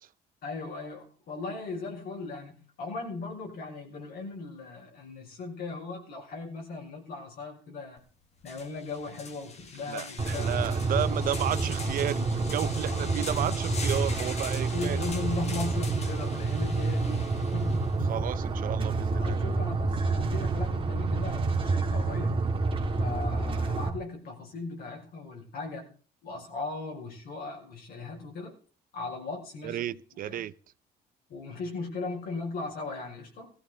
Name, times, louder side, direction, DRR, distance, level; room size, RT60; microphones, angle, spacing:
voice 1, 0.4-8.0 8.4-10.8 11.1-11.2 12.9-13.3 14.5-17.9 19.1-22.4 23.0-25.9 26.2-28.6 28.9-29.9 30.2-30.5 31.3-33.5, left 3 dB, 60° left, 5.9 m, -38 dB
sound 1, 8.0-8.1 8.4-18.0, left 4 dB, 40° left, 2.0 m, -42 dB
voice 2, 9.9-15.0 18.1-19.4 29.6-30.5, right 11 dB, 55° right, 0.6 m, -32 dB
sound 2, 10.2-23.9, right 3 dB, 30° right, 2.1 m, -28 dB
17.5 x 14.0 x 3.9 m
cardioid pair, 110°, 17 cm